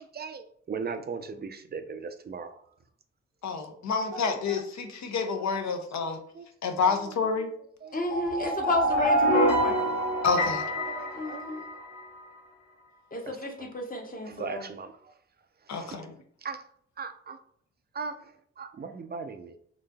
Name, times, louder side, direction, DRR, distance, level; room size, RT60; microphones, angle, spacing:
voice 1, 0.0-2.6 4.1-4.9 5.5-6.1 6.3-6.5 6.8-7.1 7.8-8.3 10.3-10.4 10.8-11.4 13.3-13.7 14.2-15.1 15.7-16.0 16.4-16.6 17.0-17.4 17.9-19.6, right 5 dB, 35° right, 8 dB, 0.5 m, -39 dB
voice 2, 3.4-6.2 6.6-7.5 10.2-10.6 15.7-16.1, left 5 dB, 65° left, 6 dB, 0.7 m, -29 dB
voice 3, 7.9-9.9 11.1-11.6 13.1-14.7, left 2 dB, 30° left, 2 dB, 0.9 m, -31 dB
sound 1, 8.0-12.0, equal, 85° left, 1.1 m, -26 dB
3.9 x 2.5 x 2.3 m, 0.64 s
supercardioid pair, 50°, 30 cm